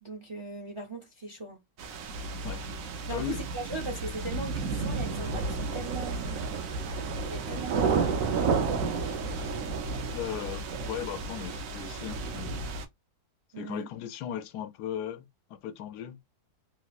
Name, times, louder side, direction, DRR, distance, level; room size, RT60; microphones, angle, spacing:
voice 1, 0.0-1.6 3.1-6.5 7.2-8.6 13.5-13.9, right 3 dB, 35° right, 0.5 m, -39 dB
sound 1, 1.8-12.8, right 4 dB, 65° right, 1.0 m, -32 dB
voice 2, 3.1-3.5 10.1-12.6 13.6-16.2, left 10 dB, 85° left, 1.1 m, -37 dB
sound 2, 4.5-9.6, right 3 dB, 80° right, 1.4 m, -40 dB
3.1 x 3.0 x 2.4 m
omnidirectional pair, 1.7 m